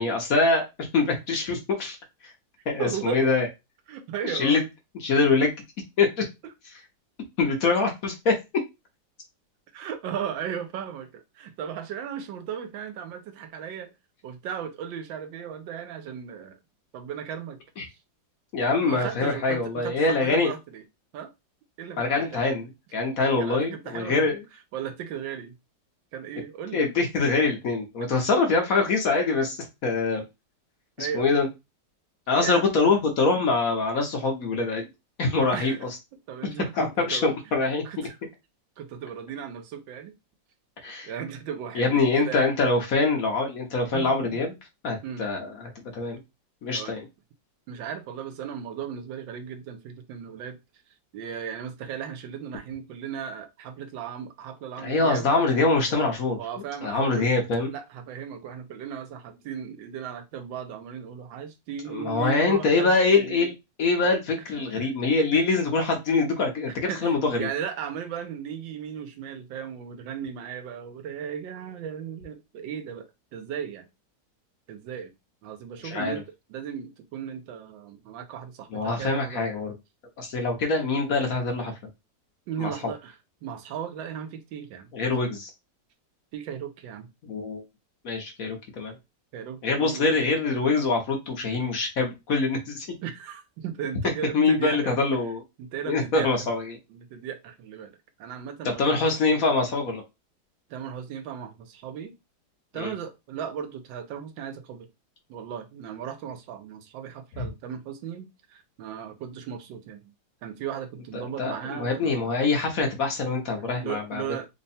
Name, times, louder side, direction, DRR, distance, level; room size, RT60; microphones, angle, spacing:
voice 1, 0.0-2.0 2.7-3.5 4.2-4.6 5.0-5.5 6.0-6.2 7.4-8.4 17.8-17.9 18.5-20.5 22.0-24.4 26.7-30.2 31.0-31.5 32.3-34.9 35.2-35.7 36.8-37.8 40.8-41.1 41.7-44.5 44.8-46.2 46.6-47.0 54.8-56.4 56.8-57.7 61.9-63.5 63.8-67.5 75.8-76.1 78.7-79.7 80.2-81.7 82.6-82.7 84.9-85.5 87.3-87.6 88.0-88.9 89.6-92.9 94.3-95.4 95.9-96.8 98.8-100.0 102.7-102.9 107.4-107.5 111.1-114.2, left 3 dB, 55° left, 1.1 m, -24 dB
voice 2, 2.8-3.3 3.9-4.6 9.7-13.9 14.2-16.6 16.9-17.6 17.9-18.0 18.8-20.8 21.1-21.3 21.8-22.4 23.2-24.3 24.7-25.5 26.1-26.8 28.8-28.9 31.0-31.5 32.4-32.6 35.4-35.8 36.3-37.3 37.8-38.2 38.8-40.1 41.0-42.5 43.9-44.4 45.0-45.3 46.7-47.0 47.7-50.6 51.1-55.3 55.9-56.0 56.4-57.3 57.7-63.5 64.0-64.1 64.6-64.9 65.3-65.4 66.7-73.9 74.7-75.1 75.4-76.2 76.5-79.5 82.5-83.1 83.4-84.9 86.3-87.1 89.3-90.1 93.0-95.0 95.6-96.5 96.9-99.0 100.7-102.2 102.7-104.9 105.3-110.0 110.4-112.3 113.6-114.5, right 8 dB, 90° right, 1.4 m, -36 dB
3.5 x 2.2 x 4.1 m
omnidirectional pair, 2.0 m